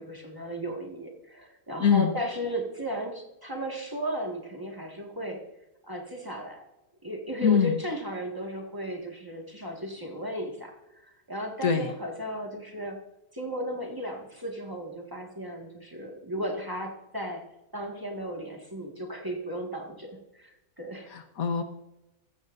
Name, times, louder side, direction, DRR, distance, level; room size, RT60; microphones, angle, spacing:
voice 1, 0.0-5.4 5.8-6.6 7.0-13.0 13.3-17.4 17.7-21.1, equal, 15° right, 0 dB, 1.9 m, -35 dB
voice 2, 1.8-2.1 7.4-7.8 11.6-11.9 21.1-21.6, left 7 dB, 70° left, 6 dB, 1.5 m, -23 dB
15.0 x 13.0 x 2.7 m, 0.95 s
omnidirectional pair, 1.6 m